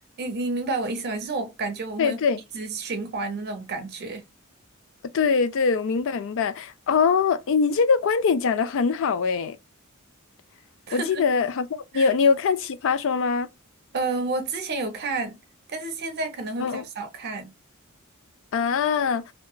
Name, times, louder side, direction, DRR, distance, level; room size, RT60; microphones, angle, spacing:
voice 1, 0.2-2.2 2.5-4.2 10.9-11.2 11.9-12.1 13.9-15.4 15.7-17.5, right 3 dB, 50° right, 0.6 m, -30 dB
voice 2, 2.0-2.4 5.1-9.6 10.9-13.5 16.6-16.8 18.5-19.2, left 5 dB, 65° left, 0.4 m, -23 dB
2.8 x 2.3 x 2.2 m
head